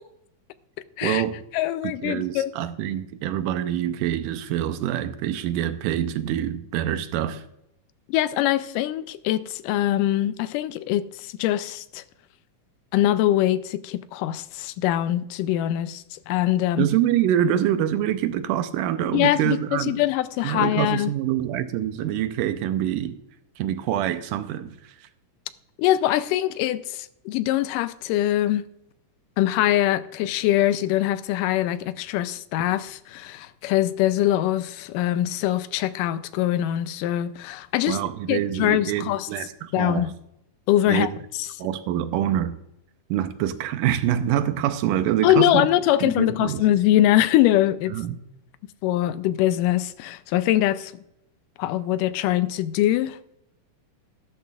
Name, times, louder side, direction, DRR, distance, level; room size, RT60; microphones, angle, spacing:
voice 1, 1.0-1.4 1.8-7.4 16.8-20.0 20.4-23.2 23.6-24.9 37.9-40.1 40.9-41.1 41.6-42.5 43.1-45.7 46.0-46.6 47.9-48.2, right 11 dB, 90° right, 2.2 m, -25 dB
voice 2, 1.5-2.5 8.1-12.0 12.9-16.9 19.1-21.1 25.8-28.7 29.4-38.0 38.3-39.3 39.7-40.1 40.7-41.1 45.2-48.0 48.8-50.9 51.6-53.2, left 13 dB, 90° left, 2.2 m, -23 dB
14.5 x 12.5 x 2.4 m
omnidirectional pair, 3.7 m